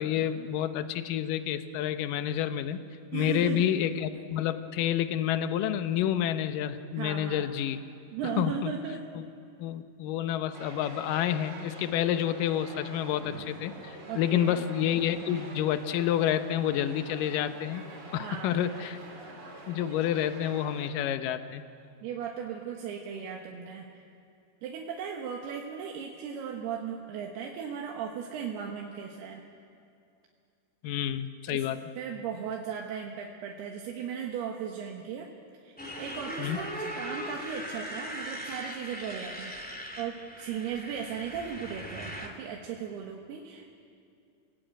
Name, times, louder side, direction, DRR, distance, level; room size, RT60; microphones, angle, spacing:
voice 1, 0.0-2.8 3.1-7.8 8.2-8.7 9.2-9.3 9.6-17.8 18.1-19.0 19.7-21.6 30.8-31.8 36.4-36.6, left 10 dB, 70° left, 10 dB, 2.3 m, -29 dB
voice 2, 3.1-3.7 7.0-7.5 8.1-9.0 14.1-14.6 18.2-18.6 22.0-24.0 24.6-29.4 31.5-31.6 32.0-35.3 35.6-43.8, right 7 dB, 85° right, 0 dB, 3.4 m, -37 dB
sound 1, 10.5-20.9, right 1 dB, 30° right, 2.9 m, -46 dB
Motorcycle, 35.8-42.3, equal, 5° left, 1.4 m, -39 dB
28.5 x 18.0 x 9.1 m, 2.4 s
omnidirectional pair, 4.5 m